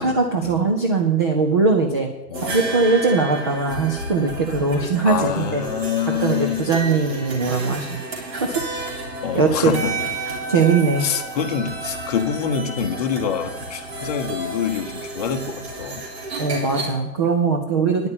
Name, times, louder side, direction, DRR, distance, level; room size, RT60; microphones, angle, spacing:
voice 1, 0.0-2.1 2.4-5.6 6.2-8.0 8.3-8.7 9.3-9.8 10.5-11.1 16.4-18.1, right 4 dB, 15° right, 2 dB, 0.5 m, -20 dB
voice 2, 2.3-2.8 5.0-6.6 9.2-10.0 10.3-10.4 11.0-16.1, left 8 dB, 25° left, 6 dB, 0.9 m, -26 dB
sound 1, 2.3-16.9, right 2 dB, 40° right, 3.5 m, -31 dB
10.0 x 6.4 x 8.9 m, 1.0 s
figure-of-eight pair, 135°, 47 cm